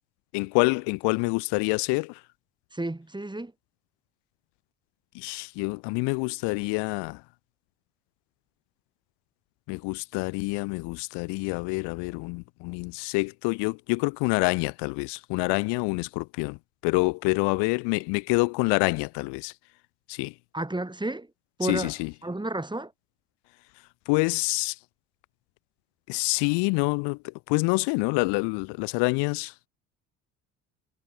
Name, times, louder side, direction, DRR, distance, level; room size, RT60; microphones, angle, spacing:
voice 1, 0.3-2.2 5.1-7.2 9.7-16.6 16.8-19.5 20.1-20.3 21.6-22.1 24.1-24.8 26.1-27.2 27.5-29.5, left 30 dB, 70° left, 0.8 m, -27 dB
voice 2, 2.7-3.5 20.5-21.3 21.6-22.0 22.2-22.9, right 2 dB, 10° right, 4.1 m, -31 dB
hypercardioid pair, 60°, 43 cm